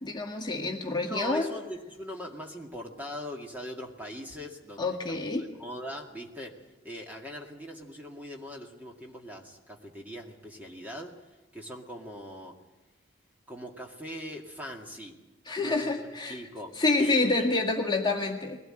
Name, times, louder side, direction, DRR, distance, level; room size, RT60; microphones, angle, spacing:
voice 1, 0.0-1.5 4.8-5.4 15.5-16.4 16.8-18.6, left 3 dB, 25° left, 1 dB, 1.8 m, -27 dB
voice 2, 1.1-11.1 11.5-12.5 13.5-15.2 15.6-17.6, equal, 10° right, 0 dB, 2.1 m, -41 dB
21.5 x 17.5 x 8.9 m, 1.1 s
head